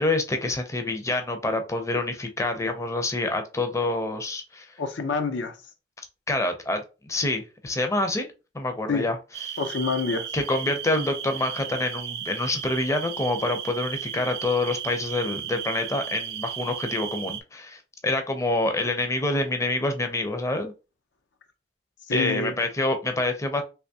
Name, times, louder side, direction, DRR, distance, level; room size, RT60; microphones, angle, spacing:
voice 1, 0.0-4.7 6.3-8.3 8.5-9.2 9.5-9.6 10.3-20.7 22.1-23.6, left 2 dB, 15° left, 0.5 m, -27 dB
voice 2, 4.8-5.6 8.9-9.1 9.6-10.3 22.1-22.6, left 4 dB, 90° left, 0.6 m, -27 dB
sound 1, 9.3-17.4, right 10 dB, 60° right, 0.4 m, -35 dB
3.4 x 2.8 x 2.7 m
head